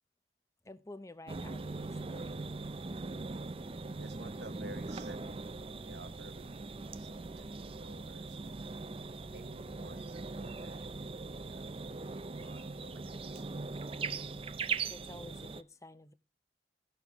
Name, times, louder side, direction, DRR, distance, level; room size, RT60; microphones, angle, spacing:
voice 1, 0.6-2.5 14.9-16.1, left 2 dB, 15° left, 0.7 m, -51 dB
sound 1, 1.3-15.6, right 4 dB, 30° right, 0.5 m, -41 dB
voice 2, 4.0-5.4 5.8-8.6 9.1-11.8 12.0-13.8, right 2 dB, 70° right, 0.9 m, -53 dB
16.0 x 6.7 x 3.5 m
head